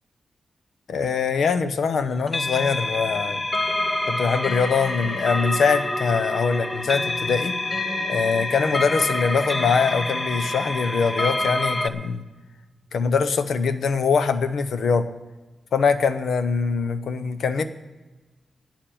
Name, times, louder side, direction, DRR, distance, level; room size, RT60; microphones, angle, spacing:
voice 1, 0.9-3.4 4.1-7.5 8.1-12.2 12.9-15.1 15.7-17.6, left 5 dB, 85° left, 10 dB, 0.8 m, -23 dB
sound 1, 2.3-11.9, left 2 dB, 15° left, 0.6 m, -27 dB
11.5 x 7.5 x 9.2 m, 1.2 s
wide cardioid pair, 135°, 0 cm